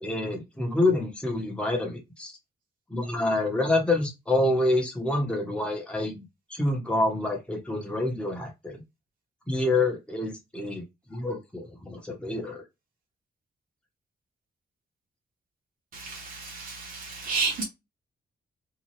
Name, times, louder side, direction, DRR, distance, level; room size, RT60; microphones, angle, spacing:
voice 1, 0.0-2.3 2.9-6.2 6.5-8.8 9.5-12.6, left 2 dB, 5° left, 0.8 m, -27 dB
voice 2, 15.9-17.6, right 4 dB, 55° right, 1.0 m, -31 dB
2.7 x 2.3 x 3.0 m
wide cardioid pair, 140°, 17 cm